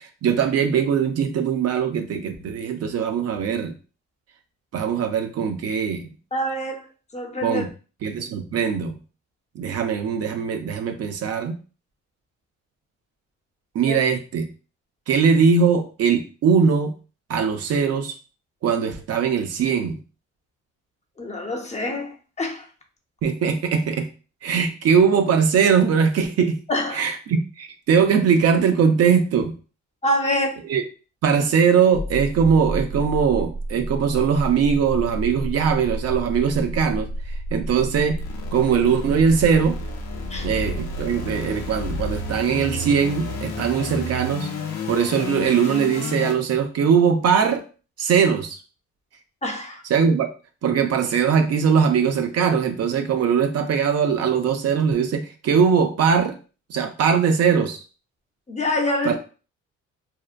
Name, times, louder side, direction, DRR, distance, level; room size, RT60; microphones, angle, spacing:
voice 1, 0.0-3.7 4.7-6.1 7.4-7.7 8.0-9.0 9.6-11.6 13.7-14.5 15.1-16.9 17.3-18.1 18.6-20.0 23.2-24.1 24.4-26.6 26.9-29.5 30.7-30.8 31.2-37.1 37.5-38.2 38.5-39.8 40.4-44.5 44.9-47.6 48.0-48.6 49.9-50.3 50.6-56.4 56.7-57.8 59.0-59.2, right 6 dB, 55° right, 0.5 m, -21 dB
voice 2, 6.3-6.8 7.1-7.6 13.9-14.0 21.2-22.7 26.7-27.1 30.0-30.7 40.3-40.5 49.4-49.8 58.5-59.2, left 1 dB, 25° left, 0.6 m, -26 dB
sound 1, 31.9-46.3, equal, 75° left, 0.7 m, -30 dB
2.7 x 2.1 x 2.4 m
cardioid pair, 90°, 30 cm